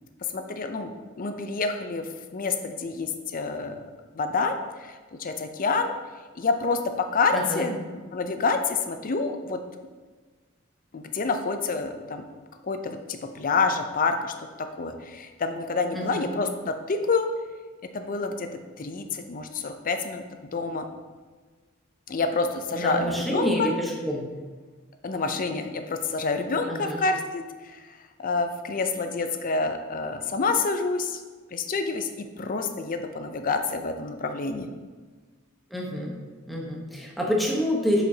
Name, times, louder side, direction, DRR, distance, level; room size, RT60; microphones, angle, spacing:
voice 1, 0.3-3.8 4.1-5.9 6.4-7.8 8.1-9.6 10.9-12.2 12.6-14.3 14.8-17.3 17.9-18.5 18.8-20.2 20.5-20.9 22.1-23.7 25.0-27.8 28.2-31.2 31.5-34.7, left 4 dB, 40° left, 7 dB, 0.5 m, -28 dB
voice 2, 7.3-7.7 15.9-16.3 22.7-24.3 26.7-27.0 35.7-36.1 36.5-38.0, equal, ahead, -3 dB, 1.0 m, -27 dB
7.5 x 5.0 x 2.8 m, 1.4 s
head